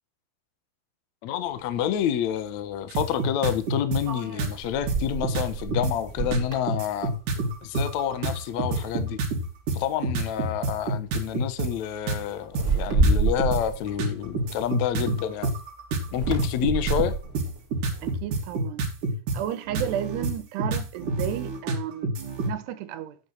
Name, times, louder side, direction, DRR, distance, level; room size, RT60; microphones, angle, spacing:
voice 1, 1.2-7.1 7.6-9.2 9.7-15.5 16.1-17.2, left 10 dB, 70° left, 1.8 m, -28 dB
sound 1, 1.7-1.8 4.0-7.7 8.0-8.3 8.7-9.4 10.3-10.5 10.8-11.1 12.5-15.1 16.0-18.5, right 3 dB, 25° right, 3.2 m, -29 dB
sound 2, 2.9-4.0 4.4-4.5 4.9-5.0 5.2-5.9 6.3-11.7 12.1-12.2 12.5-13.6 14.0-19.4 19.7-22.5, right 3 dB, 55° right, 3.5 m, -27 dB
voice 2, 18.0-18.8 19.3-22.1 22.4-23.2, right 11 dB, 90° right, 3.2 m, -32 dB
8.8 x 8.5 x 4.4 m
omnidirectional pair, 4.6 m